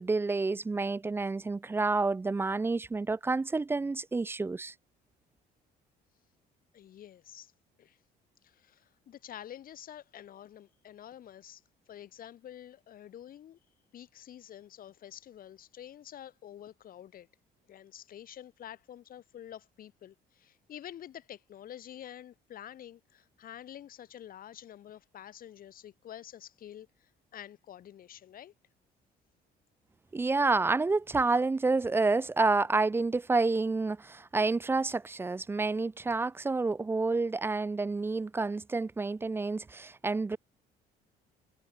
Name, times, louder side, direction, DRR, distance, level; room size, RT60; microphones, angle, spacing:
voice 1, 0.0-4.7 30.1-40.4, right 3 dB, 15° right, 0.4 m, -29 dB
voice 2, 6.7-7.5 7.8-8.0 8.4-11.6 11.9-13.6 13.9-17.3 17.7-28.5, left 11 dB, 60° left, 5.0 m, -48 dB
cardioid pair, 110°, 17 cm